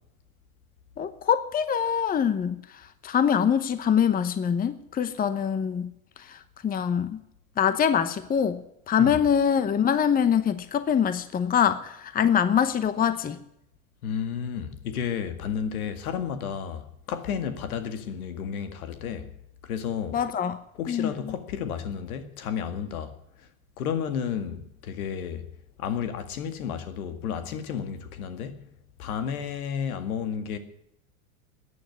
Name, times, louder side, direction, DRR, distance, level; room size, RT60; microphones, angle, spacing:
voice 1, 1.0-2.6 3.0-5.9 6.2-7.2 7.6-13.4 20.1-20.6 20.9-21.3, left 8 dB, 20° left, 0.9 m, -24 dB
voice 2, 14.0-19.3 19.6-20.2 20.8-23.1 23.8-25.5 25.8-28.6 29.0-30.6, left 7 dB, 75° left, 2.1 m, -32 dB
14.0 x 9.4 x 9.5 m
hypercardioid pair, 110°, 43 cm